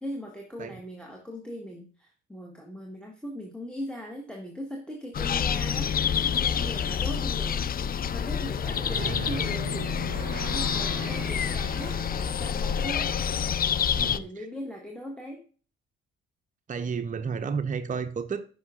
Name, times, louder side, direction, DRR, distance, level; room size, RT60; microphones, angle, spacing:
voice 1, 0.0-7.7 8.1-13.1 13.9-15.4, equal, 5° left, 1.5 m, -39 dB
sound 1, 5.1-14.2, left 8 dB, 30° left, 0.4 m, -28 dB
voice 2, 8.7-9.4 14.0-14.5 16.7-18.5, right 6 dB, 25° right, 0.6 m, -32 dB
sound 2, 8.9-14.0, right 12 dB, 65° right, 0.6 m, -42 dB
9.5 x 5.7 x 2.4 m
hypercardioid pair, 50°, 31 cm